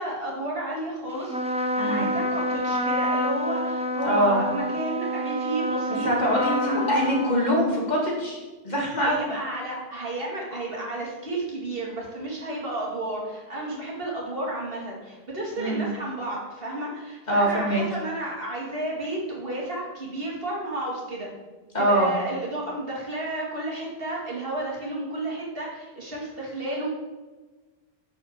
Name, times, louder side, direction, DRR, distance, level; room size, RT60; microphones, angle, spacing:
voice 1, 0.0-6.1 6.4-6.9 9.0-21.3 21.8-26.9, right 1 dB, 65° right, -3 dB, 2.5 m, -32 dB
Trumpet, 1.2-8.1, equal, 10° right, 0.3 m, -28 dB
voice 2, 1.8-2.1 4.0-4.4 6.0-9.2 15.6-15.9 17.3-17.8 21.7-22.1, equal, 45° left, -3 dB, 2.3 m, -23 dB
7.1 x 5.4 x 6.6 m, 1.3 s
omnidirectional pair, 1.1 m